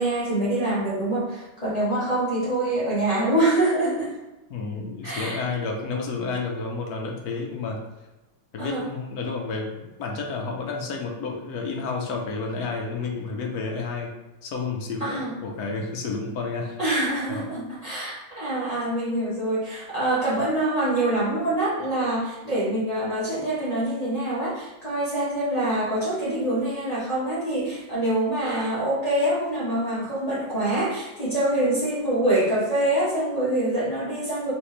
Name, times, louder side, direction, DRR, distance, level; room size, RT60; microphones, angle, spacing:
voice 1, 0.0-4.1 5.0-5.4 8.6-8.9 15.0-15.3 16.8-34.5, right 1 dB, 20° left, -11 dB, 1.3 m, -25 dB
voice 2, 4.5-7.8 8.5-14.1 14.4-16.8 17.3-17.5, left 4 dB, 60° left, 1 dB, 1.1 m, -30 dB
4.7 x 3.1 x 3.2 m, 1.1 s
omnidirectional pair, 2.1 m